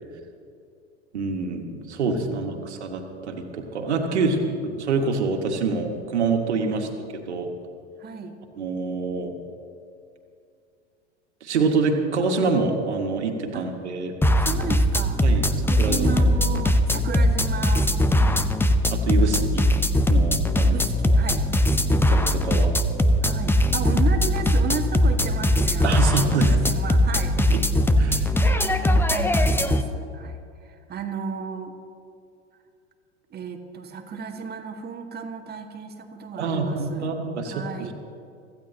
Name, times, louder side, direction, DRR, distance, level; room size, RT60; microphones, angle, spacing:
voice 1, 1.1-4.4 4.6-7.5 8.6-9.3 11.4-14.2 15.2-16.1 17.1-17.2 18.9-19.7 20.1-20.8 21.9-22.7 25.8-26.5 27.5-27.6 28.0-28.3 36.4-37.9, right 4 dB, 75° right, 2 dB, 2.3 m, -26 dB
voice 2, 2.3-2.8 4.1-4.5 6.7-6.9 8.0-8.4 13.5-13.6 14.4-15.2 15.6-17.9 18.1-18.5 19.2-19.6 20.6-21.5 23.2-31.7 33.3-37.1 37.4-37.9, right 6 dB, 30° right, 3 dB, 2.0 m, -34 dB
sound 1, 14.2-29.8, left 1 dB, 5° left, 0.9 m, -20 dB
25.5 x 15.5 x 3.0 m, 2.4 s
figure-of-eight pair, 85°, 34 cm